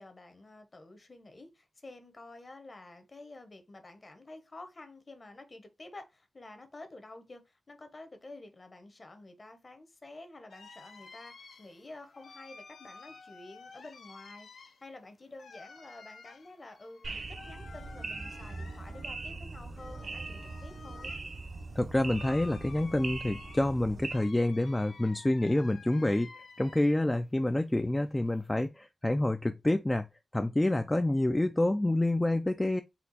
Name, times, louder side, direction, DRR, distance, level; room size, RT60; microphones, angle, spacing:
voice 1, 0.0-21.2, left 2 dB, 35° left, 0.9 m, -50 dB
sound 1, 10.5-27.2 27.5-28.7, left 4 dB, 75° left, 0.7 m, -52 dB
sound 2, 17.0-24.1, right 3 dB, 55° right, 0.8 m, -41 dB
voice 2, 21.8-26.3 26.6-30.1 30.3-32.8, left 1 dB, 15° left, 0.3 m, -28 dB
4.3 x 2.4 x 3.9 m
wide cardioid pair, 85°, 0 cm